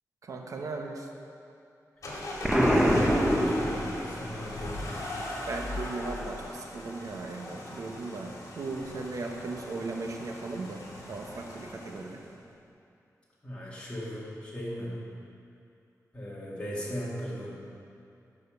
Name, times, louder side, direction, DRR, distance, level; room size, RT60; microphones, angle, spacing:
voice 1, 0.2-1.1 5.5-10.8 11.1-12.2, right 3 dB, 65° right, 2 dB, 0.9 m, -37 dB
sound 1, 2.0-12.3, left 1 dB, 60° left, 1.8 m, -39 dB
voice 2, 2.1-4.8 13.4-15.0 16.1-17.5, equal, 20° left, -7 dB, 2.0 m, -37 dB
Explosion, 2.4-4.3, equal, 5° right, 0.7 m, -24 dB
11.5 x 5.1 x 5.1 m, 2.6 s
wide cardioid pair, 140°, 6 cm